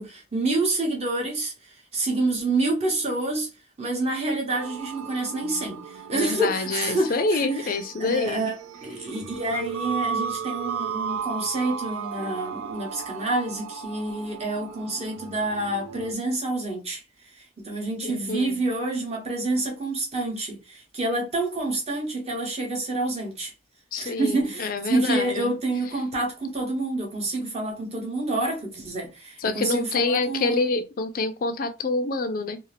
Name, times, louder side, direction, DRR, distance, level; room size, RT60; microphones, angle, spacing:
voice 1, 0.0-1.5 1.9-3.5 3.8-7.7 8.0-17.0 17.4-23.5 24.0-30.6, right 2 dB, 30° right, 0.8 m, -28 dB
sound 1, 4.5-16.1, right 6 dB, 80° right, 0.4 m, -35 dB
voice 2, 6.2-8.5 18.0-18.6 23.9-25.5 29.4-32.6, left 3 dB, 45° left, 0.4 m, -27 dB
2.6 x 2.4 x 3.2 m
head